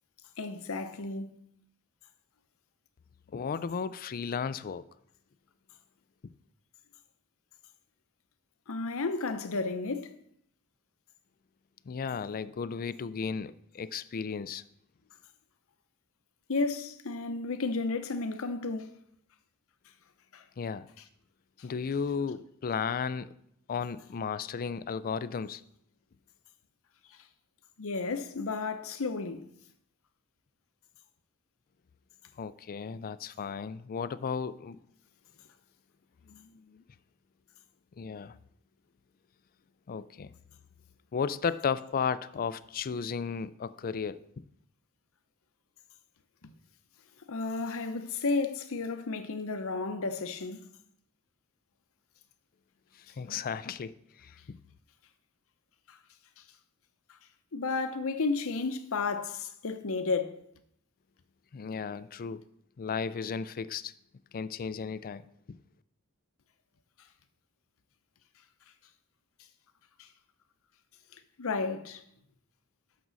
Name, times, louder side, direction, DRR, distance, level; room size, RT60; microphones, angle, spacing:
voice 1, 0.4-1.4 8.7-10.1 16.5-18.9 20.3-20.4 27.8-29.4 46.4-46.5 47.3-50.7 55.9-56.0 57.5-60.4 70.0-70.1 71.4-72.0, left 3 dB, 65° left, 0.8 m, -32 dB
voice 2, 3.3-4.9 6.2-6.3 11.9-14.6 20.6-20.9 21.6-23.3 23.7-25.6 32.4-34.8 36.3-36.8 38.0-38.4 39.9-40.3 41.1-44.2 53.0-53.9 54.2-54.6 61.5-62.4 62.8-63.9 64.3-65.2 65.5-65.6, left 6 dB, 40° left, 0.4 m, -34 dB
12.5 x 6.1 x 4.0 m
head